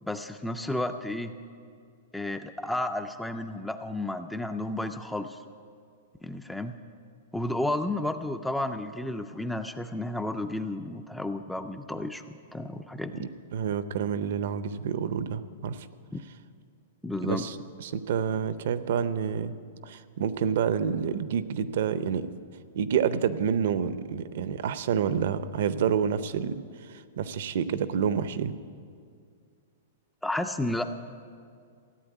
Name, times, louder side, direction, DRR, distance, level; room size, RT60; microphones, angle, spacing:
voice 1, 0.0-1.3 2.1-5.4 6.2-6.8 7.3-13.3 16.1-16.2 17.0-17.5 30.2-30.9, left 1 dB, ahead, 7 dB, 0.3 m, -32 dB
voice 2, 13.2-15.9 17.2-19.5 19.8-22.3 22.7-28.6, right 7 dB, 50° right, 14 dB, 0.6 m, -28 dB
15.0 x 8.5 x 9.2 m, 2.2 s
supercardioid pair, 175°, 0 cm